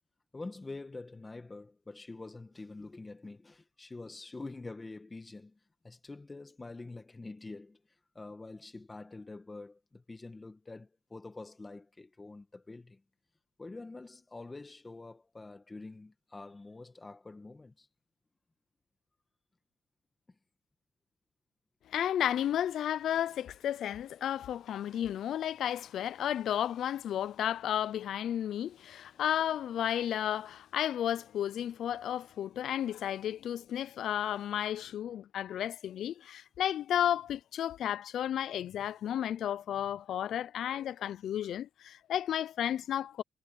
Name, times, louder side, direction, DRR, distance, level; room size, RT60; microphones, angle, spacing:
voice 1, 0.3-5.6 5.8-7.8 8.1-13.0 13.6-17.9, left 3 dB, 20° left, 1.6 m, -46 dB
voice 2, 21.9-43.2, left 10 dB, 70° left, 0.4 m, -33 dB
cardioid pair, 90°, 0 cm